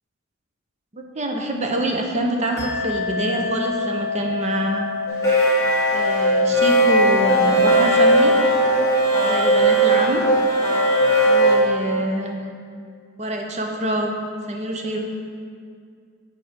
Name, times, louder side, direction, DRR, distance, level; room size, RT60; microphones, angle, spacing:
voice 1, 0.9-4.8 5.9-8.4 9.2-10.2 11.3-12.4 13.2-14.2 14.5-15.0, right 1 dB, 35° right, 2 dB, 0.8 m, -26 dB
sound 1, 2.6-10.7, left 5 dB, 50° left, 0.7 m, -31 dB
sound 2, 5.1-11.6, right 1 dB, 15° left, 1.5 m, -17 dB
7.7 x 4.3 x 5.1 m, 2.2 s
head